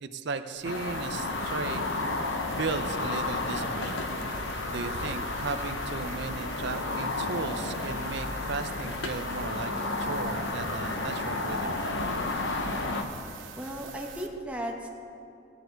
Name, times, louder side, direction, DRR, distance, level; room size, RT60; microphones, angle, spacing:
voice 1, 0.0-1.8 2.6-4.0 4.2-11.8, right 4 dB, 55° right, 9 dB, 0.6 m, -36 dB
sound 1, 0.5-14.3, right 5 dB, 75° right, 1.0 m, -45 dB
sound 2, 0.6-13.0, left 2 dB, 60° left, 0.9 m, -32 dB
voice 2, 13.4-14.9, right 1 dB, 5° right, 2 dB, 1.0 m, -36 dB
15.5 x 10.5 x 4.6 m, 2.6 s
head